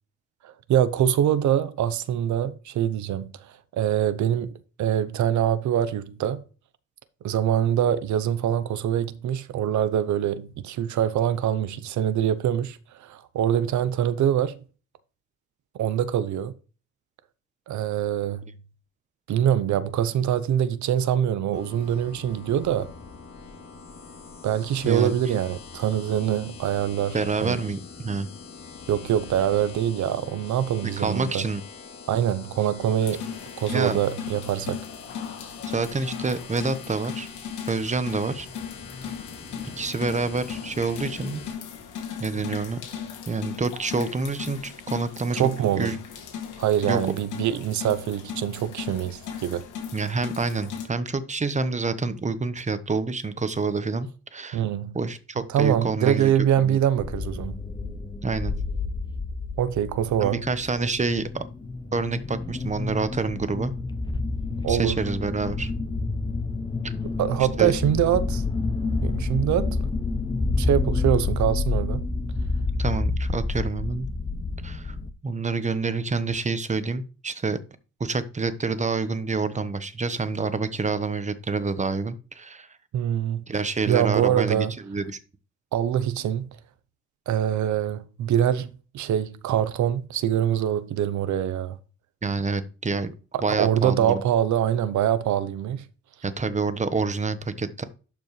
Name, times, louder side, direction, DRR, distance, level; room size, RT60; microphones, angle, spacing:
voice 1, 0.4-4.5 4.8-6.4 7.2-14.6 15.7-16.5 17.7-18.4 19.3-22.9 24.4-27.2 27.4-27.6 28.9-31.4 32.1-33.3 33.6-34.8 45.3-46.0 46.6-49.6 54.5-55.0 55.5-57.6 59.6-60.4 64.6-65.0 67.2-68.4 69.0-69.8 70.6-72.1 82.9-83.4 83.9-84.7 85.7-86.5 87.3-88.7 88.9-91.8 93.3-95.9, right 10 dB, 70° right, 0.8 m, -24 dB
sound 1, 21.5-41.5, left 5 dB, 50° left, 3.0 m, -44 dB
voice 2, 24.8-25.4 27.1-28.3 31.0-31.6 33.7-34.0 35.7-37.3 37.7-38.5 39.8-41.4 42.2-42.8 43.3-45.4 45.8-46.0 46.9-47.0 49.9-54.6 54.9-56.3 56.6-56.8 58.2-58.5 60.2-61.4 61.9-63.8 64.7-65.7 66.8-66.9 67.6-67.7 72.8-74.1 74.6-74.9 75.2-77.6 78.0-82.7 83.5-85.2 92.2-93.1 93.4-94.2 96.2-97.8, right 4 dB, 25° right, 1.1 m, -27 dB
sound 2, 33.0-50.9, left 7 dB, 85° left, 2.4 m, -37 dB
sound 3, 57.0-75.1, left 3 dB, 15° left, 0.8 m, -29 dB
11.5 x 5.3 x 3.2 m
cardioid pair, 90°, 30 cm